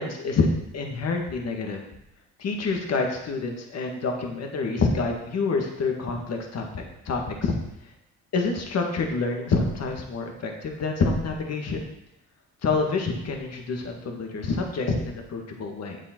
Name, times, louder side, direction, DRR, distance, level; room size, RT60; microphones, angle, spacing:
voice 1, 0.0-1.8 2.4-7.6 8.3-11.9 12.6-16.0, left 4 dB, 60° left, 2 dB, 1.8 m, -27 dB
9.4 x 7.1 x 4.5 m, 0.83 s
cardioid pair, 90°, 30 cm